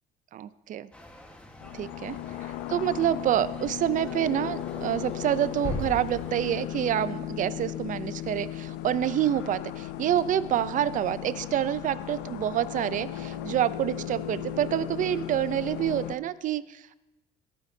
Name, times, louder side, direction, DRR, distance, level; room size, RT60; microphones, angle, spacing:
voice 1, 0.3-0.9 1.7-17.0, right 11 dB, 50° right, 16 dB, 0.5 m, -27 dB
sound 1, 0.9-6.7, left 1 dB, 5° left, 1.3 m, -50 dB
sound 2, 1.6-16.2, left 12 dB, 85° left, 0.6 m, -36 dB
sound 3, 5.6-8.3, left 2 dB, 55° left, 3.9 m, -38 dB
17.0 x 9.7 x 2.7 m, 0.99 s
cardioid pair, 110°, 17 cm